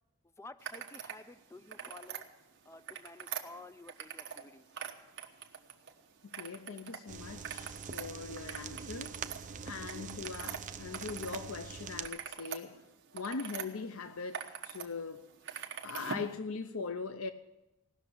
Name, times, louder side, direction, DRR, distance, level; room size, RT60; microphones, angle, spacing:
voice 1, 0.2-2.2 2.7-4.7, left 2 dB, 15° left, 0.5 m, -52 dB
sound 1, 0.6-1.2 1.6-2.2 2.7-4.5 4.7-5.9 6.3-7.0 7.3-11.4 11.8-13.7 14.1-14.9 15.1-16.3, right 7 dB, 60° right, 1.3 m, -43 dB
voice 2, 6.2-9.2 9.7-12.8 13.1-15.3 15.8-17.3, left 4 dB, 70° left, 0.7 m, -41 dB
sound 2, 7.1-12.1, right 6 dB, 35° right, 0.6 m, -44 dB
17.5 x 6.6 x 10.0 m
head